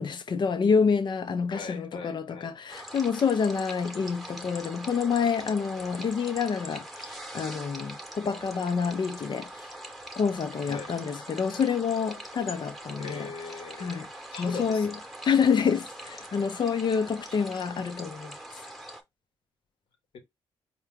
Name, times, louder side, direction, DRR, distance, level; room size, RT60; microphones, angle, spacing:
voice 1, 0.0-9.7 10.2-13.3 13.8-14.1 14.4-14.9 15.2-18.3, left 6 dB, 50° left, 0.8 m, -27 dB
voice 2, 1.5-2.5 10.7-10.9 13.0-14.0 14.3-14.9, left 5 dB, 70° left, 1.1 m, -39 dB
sound 1, 2.7-19.0, right 1 dB, ahead, 1.1 m, -43 dB
4.4 x 2.4 x 3.6 m
cardioid pair, 70°, 10 cm